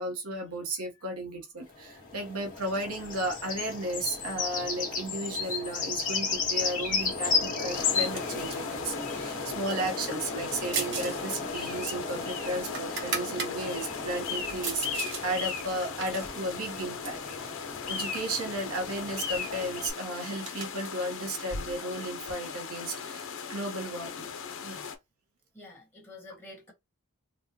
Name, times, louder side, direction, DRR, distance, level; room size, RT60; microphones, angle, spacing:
voice 1, 0.0-17.5 17.9-24.3 24.6-24.8, right 1 dB, 75° right, 1.1 m, -34 dB
sound 1, 1.7-19.9, left 5 dB, 40° left, 1.7 m, -34 dB
sound 2, 7.7-24.9, left 6 dB, 65° left, 0.8 m, -40 dB
sound 3, 10.7-11.2 11.5-13.5 14.0-15.2 15.6-17.3 18.0-18.6 18.8-18.9 19.2-22.3, right 5 dB, 55° right, 1.1 m, -37 dB
voice 2, 25.5-26.7, left 2 dB, 10° left, 1.8 m, -49 dB
4.0 x 2.3 x 2.8 m
head